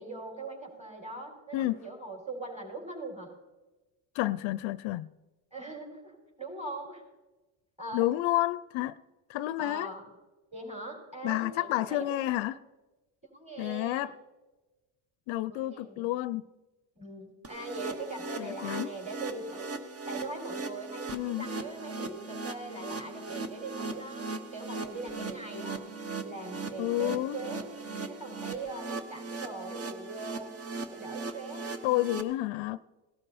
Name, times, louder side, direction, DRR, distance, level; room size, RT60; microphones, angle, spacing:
voice 1, 0.0-3.3 5.5-7.0 7.8-8.1 9.6-10.1 10.5-12.4 13.3-14.1 15.5-16.1 17.0-19.8 20.1-25.8 26.2-27.6 28.2-30.5 30.9-31.9 32.1-32.2, right 2 dB, 15° right, 4.7 m, -41 dB
voice 2, 4.1-5.1 7.9-9.0 9.3-9.9 11.2-12.5 13.6-14.1 15.3-16.4 18.4-18.9 21.1-21.5 26.8-27.4 31.8-32.8, left 16 dB, 70° left, 0.6 m, -30 dB
sound 1, 17.4-32.2, right 3 dB, 30° right, 1.3 m, -39 dB
18.0 x 12.5 x 4.2 m
cardioid pair, 100°, 48 cm